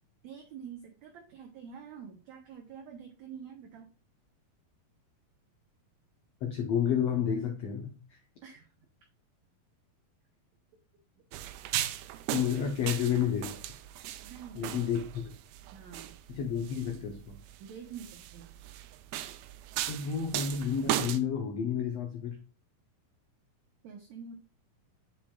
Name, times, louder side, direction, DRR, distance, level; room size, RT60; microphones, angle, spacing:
voice 1, 0.2-3.9 8.4-8.7 11.6-11.7 14.2-14.8 15.7-16.2 17.6-18.5 23.8-24.4, right 7 dB, 70° right, 3 dB, 1.8 m, -47 dB
voice 2, 6.4-8.2 12.3-13.6 14.5-15.2 16.3-17.4 19.8-22.4, left 8 dB, 70° left, 3 dB, 1.6 m, -30 dB
sound 1, 11.3-21.2, right 13 dB, 90° right, 2.5 m, -37 dB
7.5 x 7.3 x 2.4 m, 0.36 s
omnidirectional pair, 4.2 m